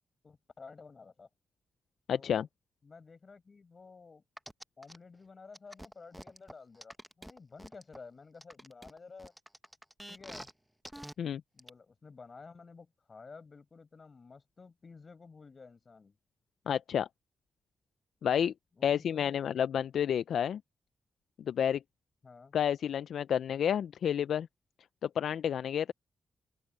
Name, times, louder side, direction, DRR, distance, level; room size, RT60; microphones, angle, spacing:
voice 1, 0.2-1.3 2.1-2.5 2.8-4.2 4.8-9.3 10.1-10.5 11.5-16.2 18.8-19.4 22.2-22.5, left 4 dB, 45° left, 7.5 m, -52 dB
voice 2, 2.1-2.5 11.2-11.4 16.7-17.1 18.2-18.5 18.8-20.6 21.5-21.8 22.5-24.5 25.0-25.9, left 9 dB, 80° left, 0.4 m, -30 dB
sound 1, 4.4-5.0 5.5-8.0 8.4-10.5 10.8-11.1 11.6-11.7, right 1 dB, 5° right, 0.9 m, -47 dB
open air
cardioid pair, 65°, 0 cm